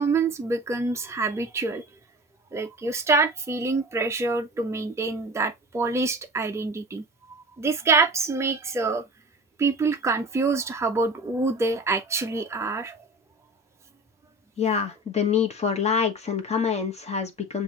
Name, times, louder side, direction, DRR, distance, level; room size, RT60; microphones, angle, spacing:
voice 1, 0.0-1.8 2.5-7.0 7.6-9.0 9.6-13.0, right 3 dB, 10° right, 0.6 m, -25 dB
voice 2, 14.6-17.6, left 6 dB, 20° left, 1.3 m, -25 dB
7.0 x 2.6 x 2.9 m
cardioid pair, 105°, 31 cm